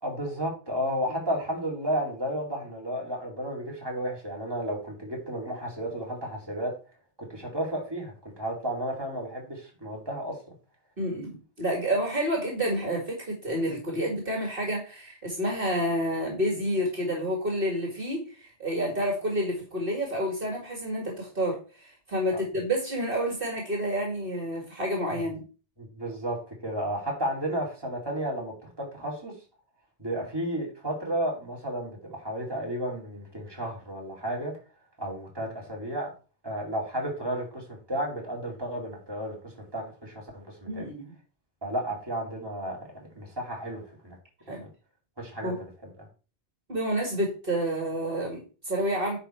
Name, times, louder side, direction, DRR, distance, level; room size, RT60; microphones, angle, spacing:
voice 1, 0.0-6.7 7.2-10.4 22.3-22.4 25.8-29.3 30.0-34.6 35.0-36.1 36.4-40.9 41.6-44.1 44.5-44.7 45.2-45.5 46.0-46.1, right 1 dB, 20° right, -1 dB, 2.9 m, -33 dB
voice 2, 11.0-25.4 40.7-41.1 44.5-44.6 45.4-45.6 46.7-49.2, equal, 55° right, 0 dB, 2.4 m, -29 dB
9.8 x 4.9 x 4.5 m, 0.35 s
omnidirectional pair, 1.1 m